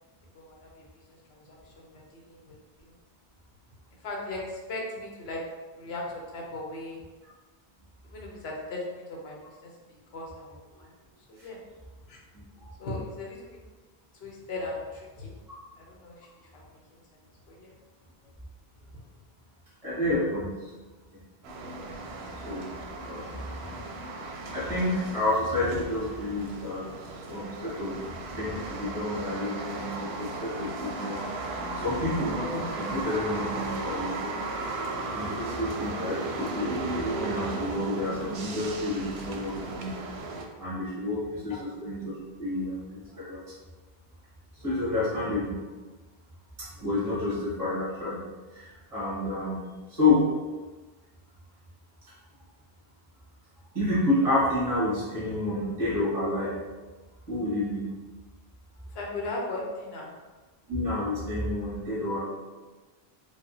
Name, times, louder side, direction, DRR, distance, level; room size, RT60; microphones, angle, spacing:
voice 1, 0.3-0.8 1.3-2.5 2.8-2.9 4.0-5.4 5.7-6.0 6.3-7.0 8.1-9.7 10.1-10.9 11.3-11.6 12.1-12.2 12.8-13.6 14.2-15.3 15.8-16.3 16.5-16.6 17.5-17.7 41.5-41.6 58.9-60.1, left 2 dB, 80° left, -2 dB, 1.0 m, -38 dB
voice 2, 12.3-12.7 19.8-20.7 21.1-21.2 22.4-22.7 22.9-24.0 24.4-28.0 28.3-31.3 31.7-34.3 35.1-39.9 40.6-43.4 44.5-45.6 46.6-49.6 49.9-50.3 53.7-56.6 57.3-58.0 60.7-62.2, left 2 dB, 35° right, -10 dB, 1.7 m, -29 dB
sound 1, 21.4-40.4, right 2 dB, 85° right, 0.8 m, -36 dB
4.9 x 2.3 x 2.6 m, 1.3 s
omnidirectional pair, 1.0 m